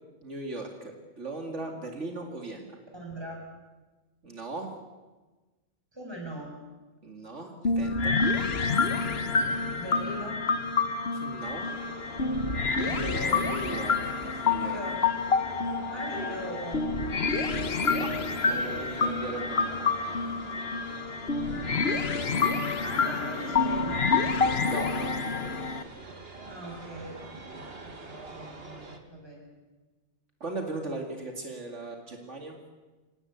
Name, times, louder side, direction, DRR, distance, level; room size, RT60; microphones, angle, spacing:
voice 1, 0.2-2.8 4.2-4.7 7.0-8.2 11.1-11.6 12.9-13.2 13.5-13.9 14.4-14.8 18.0-18.1 18.4-19.9 24.6-25.6 30.4-32.6, right 2 dB, 80° right, 3 dB, 2.8 m, -38 dB
voice 2, 2.9-3.4 5.9-6.5 9.7-10.5 12.8-15.1 15.9-16.9 21.5-21.9 22.4-24.1 26.4-29.5, right 1 dB, 20° right, -1 dB, 7.3 m, -40 dB
sound 1, 7.6-25.8, left 4 dB, 60° left, 1.4 m, -28 dB
sound 2, 11.4-29.0, right 3 dB, 55° right, 2.4 m, -45 dB
26.0 x 19.0 x 8.3 m, 1.2 s
omnidirectional pair, 1.2 m